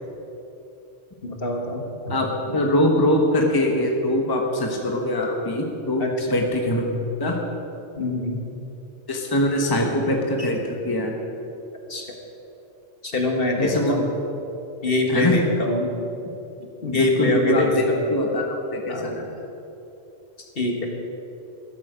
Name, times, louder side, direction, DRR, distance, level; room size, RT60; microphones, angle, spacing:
voice 1, 1.2-2.2 2.5-2.6 6.0-6.3 8.0-8.4 10.4-10.5 11.9-12.1 13.0-14.1 14.8-16.1 16.8-18.0 18.9-19.2 20.4-20.9, left 2 dB, 50° left, 1 dB, 1.6 m, -25 dB
voice 2, 2.1-6.0 6.3-6.8 7.2-7.4 9.1-11.1 13.6-13.9 15.1-15.4 16.9-17.8 18.1-19.3, left 1 dB, 20° left, 1 dB, 1.2 m, -22 dB
13.0 x 12.5 x 5.1 m, 2.9 s
omnidirectional pair, 1.2 m